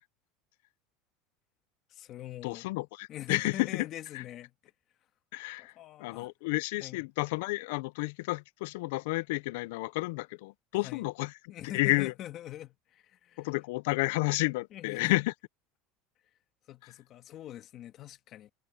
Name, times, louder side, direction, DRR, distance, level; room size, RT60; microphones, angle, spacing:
voice 1, 1.9-2.7 3.1-4.5 5.6-6.3 6.8-7.0 10.8-11.1 11.5-13.5 14.7-15.1 16.7-18.5, left 12 dB, 40° left, 1.8 m, -43 dB
voice 2, 2.4-3.9 4.1-4.2 5.3-5.7 6.0-11.3 11.7-12.1 13.4-15.3, left 22 dB, 75° left, 0.5 m, -31 dB
supercardioid pair, 145°, 0 cm